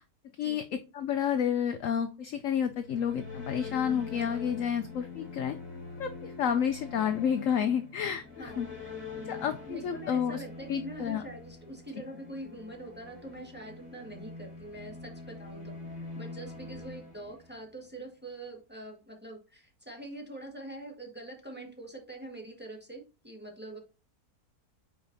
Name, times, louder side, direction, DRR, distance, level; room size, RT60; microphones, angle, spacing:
voice 1, 0.4-5.5 6.0-8.7 9.3-10.4 10.7-11.2, left 8 dB, 70° left, 8 dB, 0.8 m, -30 dB
sound 1, 2.7-17.9, left 4 dB, 50° left, 2.9 m, -44 dB
voice 2, 9.3-15.7 16.1-23.8, right 1 dB, 5° right, 0 dB, 1.5 m, -44 dB
8.9 x 4.8 x 2.6 m, 0.32 s
omnidirectional pair, 1.8 m